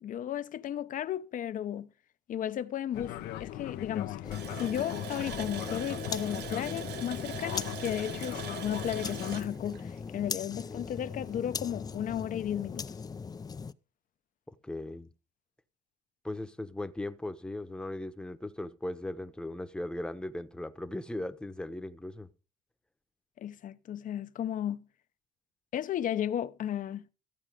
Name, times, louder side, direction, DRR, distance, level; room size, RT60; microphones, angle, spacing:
voice 1, 0.0-1.9 2.3-12.9 23.4-24.9 25.7-27.1, left 10 dB, 50° left, 0.8 m, -34 dB
Fixed-wing aircraft airplane, 2.9-9.5, left 13 dB, 85° left, 1.0 m, -39 dB
sound 1, 4.2-13.7, left 5 dB, 25° left, 0.5 m, -40 dB
Water tap faucet, 4.3-10.8 11.1-11.2 11.7-11.8, right 12 dB, 75° right, 1.0 m, -43 dB
voice 2, 14.5-15.1 16.2-22.3, left 1 dB, 5° left, 1.0 m, -38 dB
14.5 x 8.7 x 5.1 m
cardioid pair, 110°, 17 cm